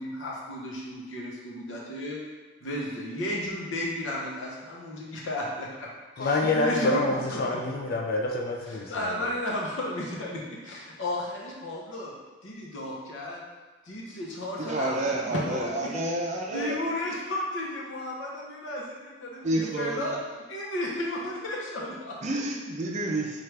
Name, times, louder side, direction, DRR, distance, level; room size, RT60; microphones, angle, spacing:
voice 1, 0.0-2.2 2.6-5.9 6.2-7.0 7.3-7.6 8.7-12.1 12.4-13.4 13.8-16.0 16.5-20.2 20.5-22.2, left 1 dB, 75° left, -3 dB, 0.8 m, -34 dB
voice 2, 6.2-9.3, left 2 dB, 50° left, 1 dB, 0.4 m, -27 dB
voice 3, 14.6-16.8 19.4-20.2 22.2-23.4, right 1 dB, 35° right, -1 dB, 0.5 m, -29 dB
4.5 x 2.5 x 3.2 m, 1.3 s
head